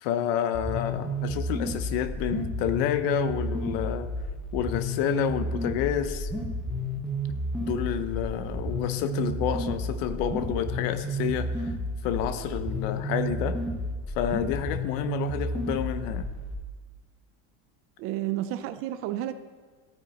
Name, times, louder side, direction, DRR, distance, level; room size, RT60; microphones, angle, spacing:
voice 1, 0.0-4.1 4.5-6.3 7.6-11.7 12.0-13.6 14.1-16.3, left 10 dB, 65° left, 11 dB, 0.9 m, -29 dB
sound 1, 0.5-16.5, equal, ahead, 1.0 m, -31 dB
voice 2, 18.0-19.3, right 13 dB, 35° right, 11 dB, 0.4 m, -31 dB
15.0 x 9.2 x 4.2 m, 1.4 s
cardioid pair, 175°, 40 cm